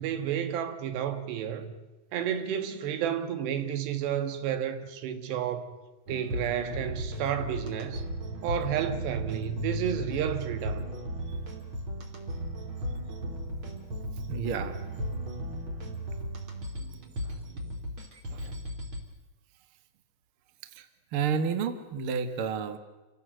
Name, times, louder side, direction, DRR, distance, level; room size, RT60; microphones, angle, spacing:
voice 1, 0.0-1.8 2.1-5.8 6.1-8.0 8.4-10.9 16.8-17.8 18.3-18.6, right 9 dB, 90° right, 3.7 m, -32 dB
sound 1, 6.1-19.0, right 1 dB, 35° right, 3.2 m, -36 dB
voice 2, 14.3-14.8 20.8-20.9 21.1-22.8, right 6 dB, 70° right, 1.3 m, -30 dB
27.5 x 16.5 x 7.8 m
omnidirectional pair, 4.7 m